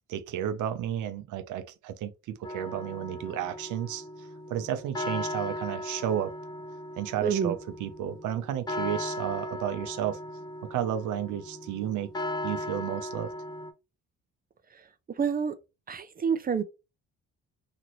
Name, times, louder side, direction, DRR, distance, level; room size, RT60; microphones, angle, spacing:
voice 1, 0.1-2.1 2.4-6.3 7.0-10.2 10.7-12.1 12.4-13.3, right 10 dB, 85° right, 0.6 m, -32 dB
sound 1, 2.4-13.7, left 1 dB, 15° left, 0.6 m, -37 dB
voice 2, 7.2-7.5 15.2-15.5 15.9-16.6, right 6 dB, 30° right, 0.4 m, -27 dB
2.9 x 2.5 x 2.9 m
cardioid pair, 90°, 30 cm